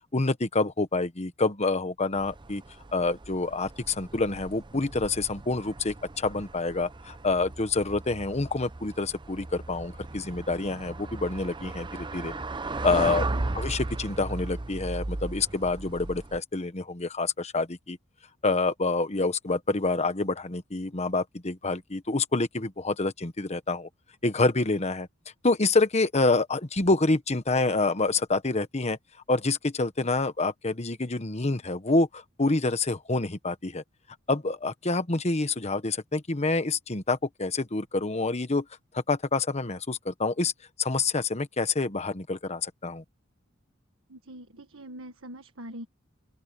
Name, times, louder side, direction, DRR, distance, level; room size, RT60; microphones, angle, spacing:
voice 1, 0.1-2.6 2.9-12.3 12.8-13.2 13.5-18.0 18.4-23.9 24.2-25.1 25.4-29.0 29.3-33.8 34.3-38.7 38.9-40.5 40.8-43.0, left 3 dB, 35° left, 1.2 m, -27 dB
sound 1, 2.1-16.4, right 2 dB, 25° right, 0.7 m, -36 dB
voice 2, 44.1-45.9, right 1 dB, 85° right, 1.5 m, -43 dB
head